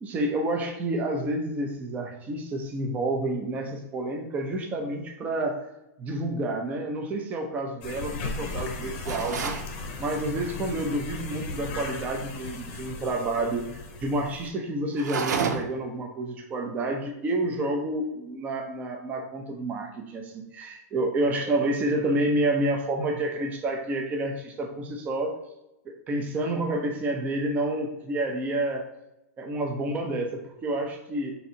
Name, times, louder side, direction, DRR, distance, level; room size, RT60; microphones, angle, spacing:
voice 1, 0.0-5.7 6.0-9.6 10.0-13.6 14.0-25.3 25.9-28.8 29.4-31.3, right 1 dB, 15° right, 2 dB, 0.5 m, -29 dB
sound 1, 7.8-14.5, left 3 dB, 40° left, 0.7 m, -36 dB
sound 2, 9.0-9.7 14.9-15.9, right 6 dB, 85° right, 0.5 m, -29 dB
3.9 x 2.7 x 4.2 m, 0.88 s
supercardioid pair, 155°, 9 cm